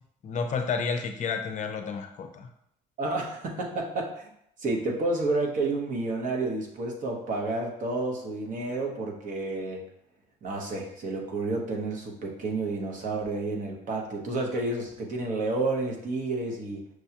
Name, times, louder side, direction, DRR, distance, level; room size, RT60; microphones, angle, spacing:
voice 1, 0.2-2.5, left 5 dB, 45° left, 6 dB, 0.5 m, -31 dB
voice 2, 3.0-4.3 4.6-9.8 10.4-16.8, right 2 dB, 50° right, 0 dB, 0.9 m, -30 dB
6.1 x 2.3 x 2.9 m, 0.74 s
cardioid pair, 110°, 17 cm